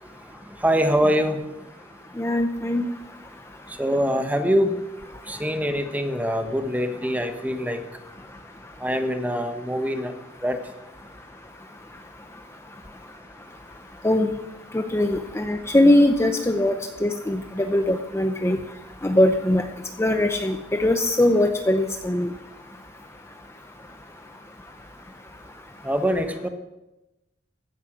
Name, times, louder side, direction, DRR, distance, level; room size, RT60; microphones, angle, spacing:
voice 1, 0.6-1.4 3.8-4.8 5.3-7.8 8.8-10.1 10.4-10.6 25.8-26.5, equal, 10° right, 7 dB, 1.1 m, -23 dB
voice 2, 2.2-2.9 14.0-14.3 14.7-16.7 17.0-18.6 19.0-19.6 20.0-22.3, left 1 dB, 15° left, 6 dB, 0.7 m, -21 dB
16.0 x 9.9 x 6.2 m, 0.99 s
head